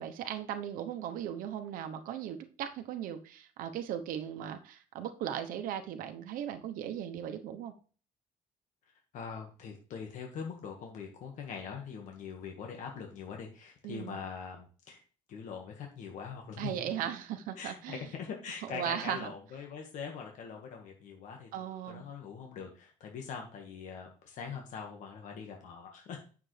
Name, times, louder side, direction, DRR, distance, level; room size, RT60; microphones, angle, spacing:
voice 1, 0.0-7.7 13.8-14.2 16.6-18.1 18.7-19.3 21.5-22.0, right 10 dB, 80° right, 8 dB, 1.0 m, -37 dB
voice 2, 9.1-15.0 15.3-16.8 17.6-26.2, left 6 dB, 60° left, 2 dB, 1.7 m, -43 dB
9.3 x 7.0 x 3.3 m, 0.38 s
cardioid pair, 155°, 14 cm